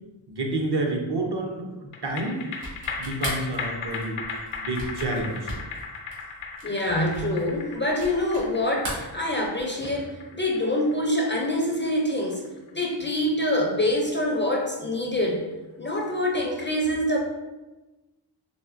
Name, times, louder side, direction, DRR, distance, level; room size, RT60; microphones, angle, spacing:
voice 1, 0.3-2.4 3.0-4.2 4.6-5.5, right 2 dB, 55° right, 1 dB, 0.8 m, -29 dB
sound 1, 1.9-14.6 14.9-15.0, left 4 dB, 90° left, 0.6 m, -37 dB
sound 2, 2.5-8.5 8.8-9.8, right 1 dB, 75° right, 1.5 m, -38 dB
voice 2, 6.6-12.4 12.7-15.4 15.8-17.2, left 1 dB, 25° left, -1 dB, 0.4 m, -25 dB
4.0 x 3.0 x 2.5 m, 1.1 s
wide cardioid pair, 105°, 47 cm